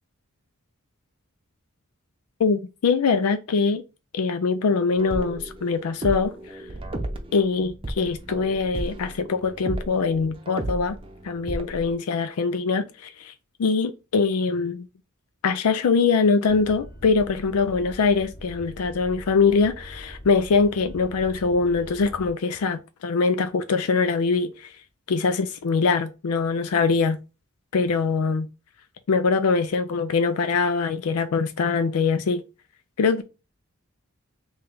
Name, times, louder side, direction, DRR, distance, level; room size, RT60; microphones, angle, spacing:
voice 1, 2.4-3.8 4.1-6.6 7.3-11.0 11.2-13.3 13.6-14.9 15.4-24.7 25.1-27.2 27.7-28.5 29.1-32.4 33.0-33.2, left 4 dB, 80° left, 0.4 m, -23 dB
sound 1, 4.9-11.9, right 1 dB, 25° right, 0.7 m, -34 dB
sound 2, 16.4-22.3, equal, 40° left, 1.2 m, -42 dB
3.3 x 3.2 x 3.7 m
head